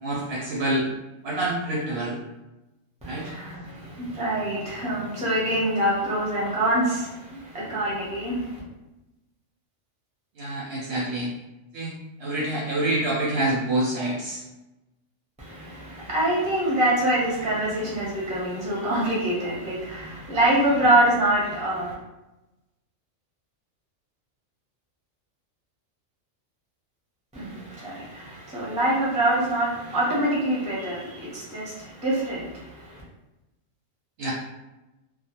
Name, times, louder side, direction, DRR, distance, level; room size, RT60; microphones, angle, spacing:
voice 1, 0.0-0.9 1.2-2.2 3.0-3.3 10.4-11.3 11.7-11.9 12.2-14.4 34.2-34.3, right 1 dB, 65° right, -4 dB, 0.7 m, -26 dB
voice 2, 3.0-8.6 15.4-21.9 27.3-33.0, right 1 dB, 10° right, -6 dB, 0.5 m, -25 dB
2.2 x 2.0 x 2.8 m, 1.0 s
omnidirectional pair, 1.3 m